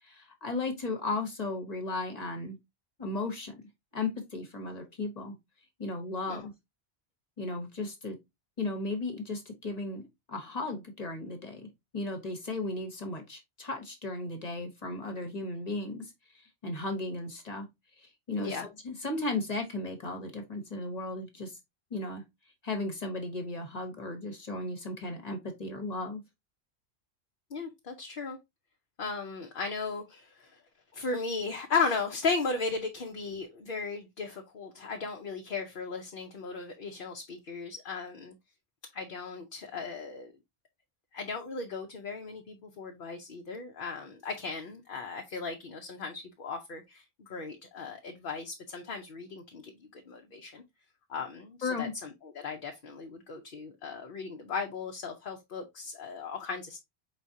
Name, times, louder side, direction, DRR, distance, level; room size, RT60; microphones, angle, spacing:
voice 1, 0.0-2.6 3.0-3.5 3.9-5.3 5.8-6.5 7.4-8.2 8.6-11.7 11.9-17.7 18.0-21.6 21.9-22.2 22.6-26.2 51.6-51.9, left 2 dB, 40° left, 1.1 m, -35 dB
voice 2, 27.5-28.4 29.0-30.6 30.9-38.3 38.9-40.3 41.1-50.6 51.1-56.8, left 4 dB, 55° left, 0.8 m, -36 dB
4.8 x 3.8 x 2.7 m
omnidirectional pair, 1.1 m